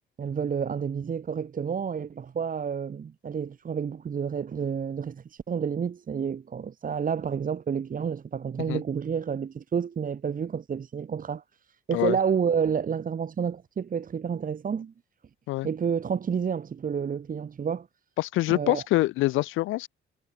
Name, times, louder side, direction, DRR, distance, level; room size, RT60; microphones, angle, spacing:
voice 1, 0.2-11.4 11.9-14.9 15.6-17.9 18.5-18.8, right 7 dB, 45° right, 1.9 m, -29 dB
voice 2, 18.2-19.9, left 18 dB, 90° left, 0.7 m, -25 dB
cardioid pair, 90°, 20 cm